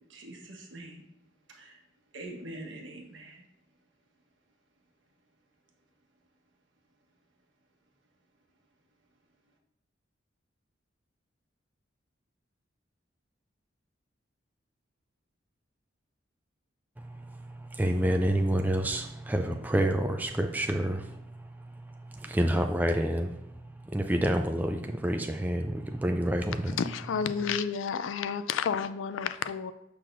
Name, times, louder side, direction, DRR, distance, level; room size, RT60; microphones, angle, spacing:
voice 1, 0.1-1.0 1.5-1.8 2.1-3.4, right 1 dB, 70° right, 1 dB, 1.2 m, -44 dB
voice 2, 17.0-26.8, right 1 dB, 10° right, 5 dB, 0.3 m, -29 dB
voice 3, 26.8-29.7, left 6 dB, 80° left, 13 dB, 0.4 m, -30 dB
6.6 x 5.8 x 2.6 m, 0.87 s
head